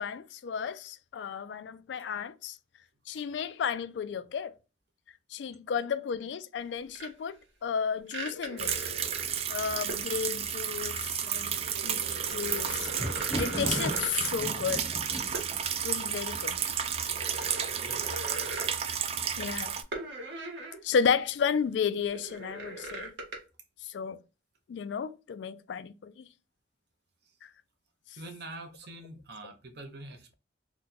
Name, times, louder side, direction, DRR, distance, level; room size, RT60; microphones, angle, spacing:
voice 1, 0.0-2.6 3.1-4.5 5.3-8.7 9.5-12.0 12.3-12.9 13.3-14.9 15.8-16.6 19.4-19.7 20.8-23.1 23.8-24.2 24.7-26.3 27.4-27.5, left 6 dB, 70° left, 0.3 m, -33 dB
sound 1, 6.9-7.1 8.1-9.4 9.9-10.1 11.6-14.5 15.3-15.5 15.9-16.1 16.7-18.8 19.9-20.8 21.2-21.3 22.1-23.4, right 2 dB, 80° right, 1.2 m, -40 dB
sound 2, 8.6-19.8, right 8 dB, 35° right, 0.3 m, -32 dB
Thunder, 12.1-17.1 17.8-18.3 18.6-18.7, right 1 dB, 20° left, 0.6 m, -38 dB
voice 2, 17.7-18.1 28.2-30.3, right 2 dB, 60° right, 0.7 m, -45 dB
2.9 x 2.2 x 3.8 m
head